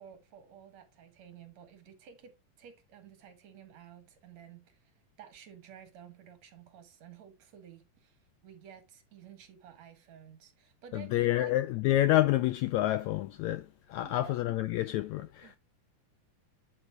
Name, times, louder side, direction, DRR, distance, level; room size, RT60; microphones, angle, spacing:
voice 1, 0.0-11.6 13.9-14.4 15.4-15.6, right 9 dB, 60° right, 2.5 m, -53 dB
voice 2, 10.9-15.6, left 15 dB, 85° left, 1.6 m, -28 dB
9.2 x 7.9 x 2.3 m
omnidirectional pair, 3.8 m